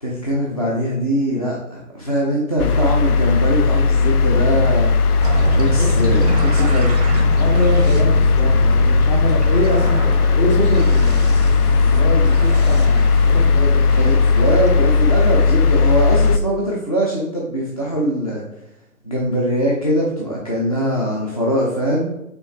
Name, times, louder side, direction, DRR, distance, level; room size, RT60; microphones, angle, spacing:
voice 1, 0.0-4.9 5.5-7.3 14.0-18.4 19.0-22.1, equal, 30° left, -4 dB, 0.3 m, -22 dB
sound 1, 2.6-16.4, left 4 dB, 85° left, 0.5 m, -16 dB
sound 2, 5.2-16.3, right 4 dB, 30° right, 0.5 m, -28 dB
voice 2, 7.3-10.1 10.4-13.8, equal, 45° left, -2 dB, 1.7 m, -24 dB
5.1 x 3.2 x 3.1 m, 0.87 s
figure-of-eight pair, 135°, 44 cm